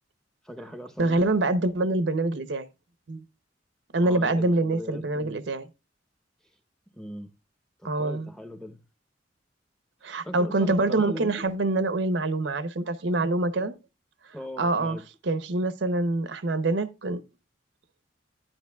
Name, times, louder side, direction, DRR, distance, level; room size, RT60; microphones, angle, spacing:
voice 1, 0.4-1.3 4.0-5.4 6.9-7.3 7.8-8.8 10.2-11.4 14.3-15.0, equal, 5° left, 0.7 m, -39 dB
voice 2, 1.0-2.7 3.1-3.2 3.9-5.7 7.8-8.3 10.0-13.7 14.6-15.0 15.3-17.2, right 2 dB, 75° right, 0.7 m, -25 dB
10.5 x 10.0 x 2.3 m
head